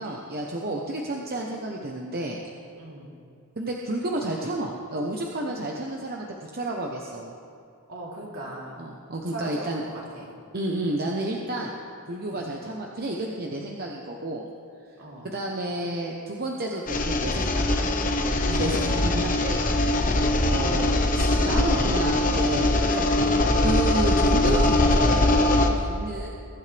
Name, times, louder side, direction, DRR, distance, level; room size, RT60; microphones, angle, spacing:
voice 1, 0.0-2.4 3.6-6.3 6.5-7.3 8.8-9.8 10.5-11.7 12.1-14.4 15.2-17.6 18.5-19.6 20.4-22.7 22.9-23.0 23.6-26.3, right 1 dB, 45° right, -1 dB, 1.0 m, -31 dB
voice 2, 2.8-3.1 7.9-8.8 9.3-10.3 12.2-12.5 15.0-15.3 18.3-18.6, right 1 dB, 70° right, -4 dB, 3.4 m, -39 dB
sound 1, 16.9-25.7, left 2 dB, 40° left, 1.1 m, -22 dB
22.0 x 11.5 x 3.5 m, 2.5 s
head